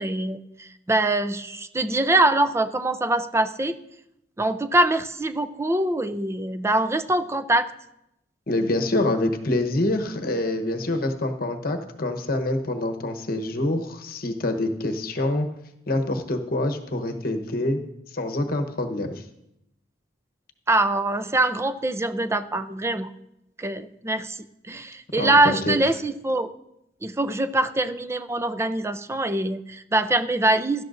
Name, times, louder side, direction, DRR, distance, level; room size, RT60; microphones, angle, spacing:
voice 1, 0.0-3.8 4.4-7.7 20.7-23.1 23.6-24.4 24.7-26.5 27.0-30.8, right 2 dB, 15° right, 10 dB, 0.5 m, -23 dB
voice 2, 8.5-15.5 15.9-17.8 18.1-19.2 25.2-25.8, left 1 dB, 55° left, 5 dB, 1.0 m, -26 dB
17.0 x 12.5 x 2.6 m, 0.83 s
head